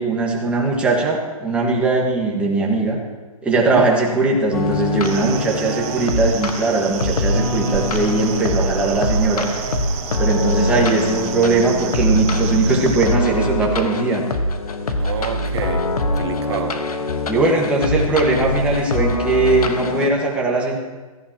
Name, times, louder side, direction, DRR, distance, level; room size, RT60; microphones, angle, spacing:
voice 1, 0.0-3.0 3.4-9.5 10.2-14.2 17.3-20.8, right 3 dB, 5° right, -2 dB, 1.6 m, -19 dB
voice 2, 3.6-3.9 14.9-15.9 16.1-16.8, right 7 dB, 45° right, 6 dB, 1.3 m, -28 dB
sound 1, 4.5-20.1, left 2 dB, 85° left, 1.4 m, -23 dB
sound 2, 5.0-13.2, right 10 dB, 25° right, 0.7 m, -33 dB
sound 3, 7.0-13.5, right 5 dB, 75° right, 1.3 m, -32 dB
16.5 x 14.0 x 3.0 m, 1.3 s
hypercardioid pair, 160°, 19 cm